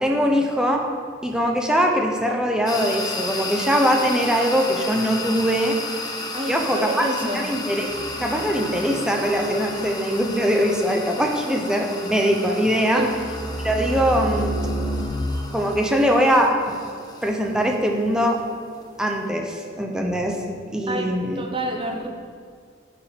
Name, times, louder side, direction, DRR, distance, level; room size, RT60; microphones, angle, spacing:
voice 1, 0.0-0.8 1.2-5.8 6.5-7.9 8.2-13.0 13.6-14.6 15.5-16.8 17.2-18.4 19.0-20.4 20.7-21.4, equal, 5° right, 1 dB, 0.9 m, -22 dB
sound 1, 2.7-19.3, left 2 dB, 20° left, 1.0 m, -34 dB
voice 2, 6.3-7.4 12.9-13.1 20.9-22.1, right 1 dB, 30° right, 3 dB, 1.0 m, -28 dB
sound 2, 7.9-10.6 13.1-15.0, right 1 dB, 90° right, 2.1 m, -31 dB
9.0 x 7.6 x 5.4 m, 2.1 s
head